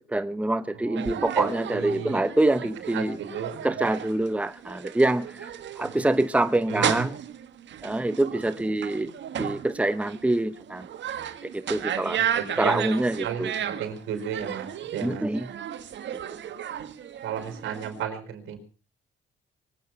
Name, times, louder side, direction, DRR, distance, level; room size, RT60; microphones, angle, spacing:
voice 1, 0.1-3.2 3.6-5.5 5.8-7.1 7.8-9.1 9.4-10.9 11.4-12.2 12.6-13.5 15.0-15.5, right 2 dB, 5° right, 0.9 m, -25 dB
voice 2, 0.7-2.3 2.9-3.8 5.8-6.0 6.7-7.1 12.2-12.9 13.2-15.3 17.2-18.6, right 8 dB, 80° right, 4.8 m, -34 dB
sound 1, 1.0-18.0, right 9 dB, 65° right, 1.6 m, -34 dB
24.0 x 9.1 x 5.9 m
cardioid pair, 90°, 20 cm